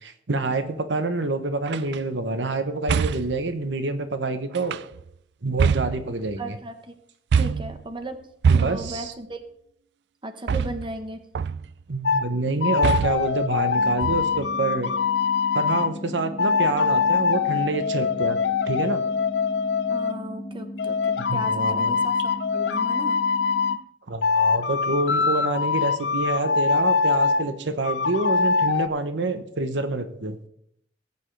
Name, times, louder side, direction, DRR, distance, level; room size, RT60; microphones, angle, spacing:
voice 1, 0.0-4.8 5.4-6.6 8.5-9.1 11.9-14.9 15.5-18.4 18.7-19.0 21.2-22.0 24.1-30.4, right 2 dB, 85° right, 9 dB, 1.0 m, -27 dB
sound 1, 1.7-2.0 2.9-3.4 4.5-5.1 5.6-6.5 7.3-7.8 8.4-9.1 10.5-11.0 11.3-11.8 12.8-13.3 14.0-14.5, right 6 dB, 65° right, 0.3 m, -24 dB
voice 2, 6.4-7.0 7.4-8.2 8.5-9.5 10.2-11.2 19.9-23.2, right 1 dB, 30° right, 8 dB, 1.0 m, -36 dB
sound 2, 12.1-12.3 12.6-15.9 16.4-20.1 20.8-23.8 24.2-27.4 27.8-28.9, left 5 dB, 75° left, 0.5 m, -23 dB
sound 3, 13.8-23.8, equal, 25° left, 1.2 m, -37 dB
18.5 x 8.2 x 3.3 m, 0.70 s
head